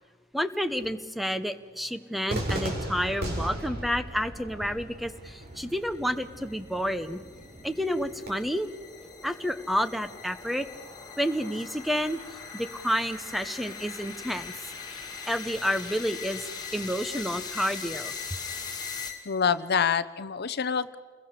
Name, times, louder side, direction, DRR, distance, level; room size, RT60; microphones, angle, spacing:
voice 1, 0.3-7.2 7.6-8.7 9.2-10.7 11.2-12.2 12.5-14.5 14.9-18.1, equal, ahead, 11 dB, 0.9 m, -30 dB
Cheering / Fireworks, 2.3-8.3, right 1 dB, 55° right, 4.9 m, -37 dB
sound 1, 4.8-19.6, left 5 dB, 20° left, 2.4 m, -41 dB
voice 2, 19.3-20.9, left 6 dB, 55° left, 14 dB, 0.8 m, -26 dB
29.5 x 22.0 x 6.8 m, 1.5 s
head